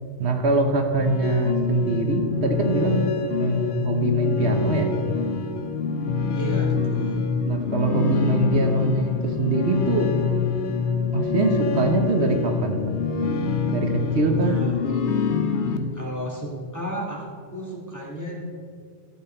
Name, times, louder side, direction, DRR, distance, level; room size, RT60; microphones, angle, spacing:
voice 1, 0.2-3.0 3.4-4.9 7.5-10.1 11.1-12.8 13.7-14.6, right 3 dB, 75° right, 4 dB, 1.3 m, -23 dB
sound 1, 1.0-15.8, left 5 dB, 80° left, 1.1 m, -25 dB
voice 2, 6.3-7.3 14.3-14.8 15.4-18.4, right 1 dB, 15° left, -3 dB, 2.2 m, -33 dB
13.5 x 7.5 x 4.4 m, 2.2 s
omnidirectional pair, 1.1 m